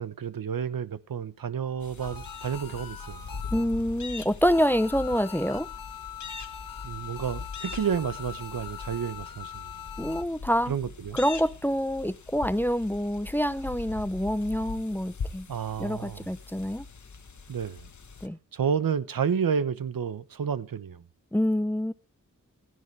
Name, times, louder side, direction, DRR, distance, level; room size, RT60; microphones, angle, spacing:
voice 1, 0.0-3.2 6.8-9.7 10.7-11.2 15.5-16.3 17.5-17.9 18.5-21.0, right 7 dB, 80° right, 1.0 m, -30 dB
sound 1, 1.8-18.3, left 5 dB, 60° left, 1.3 m, -41 dB
sound 2, 2.0-4.0 4.4-10.2, left 9 dB, 85° left, 1.5 m, -42 dB
voice 2, 3.5-5.7 10.0-10.7 11.1-15.5 15.8-16.8 18.2-18.4 21.3-21.9, equal, 5° left, 0.6 m, -26 dB
16.0 x 12.5 x 3.3 m
wide cardioid pair, 105°, 33 cm